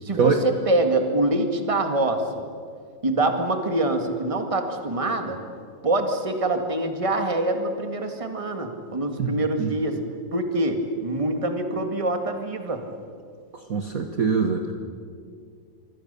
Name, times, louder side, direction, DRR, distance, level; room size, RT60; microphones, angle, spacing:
voice 1, 0.0-2.2 3.0-5.4 5.8-10.0 10.3-12.8, right 2 dB, 15° right, 5 dB, 1.9 m, -25 dB
voice 2, 9.2-9.7 13.7-14.7, right 5 dB, 45° right, 5 dB, 1.6 m, -23 dB
25.5 x 25.0 x 6.9 m, 2.2 s
omnidirectional pair, 2.3 m